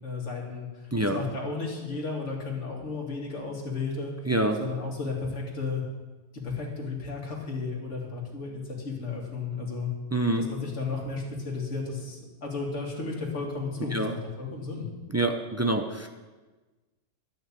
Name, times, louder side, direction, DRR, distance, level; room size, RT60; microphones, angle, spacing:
voice 1, 0.0-4.1 4.6-5.8 6.4-9.9 10.4-14.9, left 4 dB, 45° left, -1 dB, 2.6 m, -33 dB
voice 2, 4.3-4.6 10.1-10.4 13.9-14.1 15.1-16.1, right 2 dB, 20° right, 4 dB, 0.3 m, -26 dB
12.0 x 6.5 x 8.6 m, 1.2 s
omnidirectional pair, 1.7 m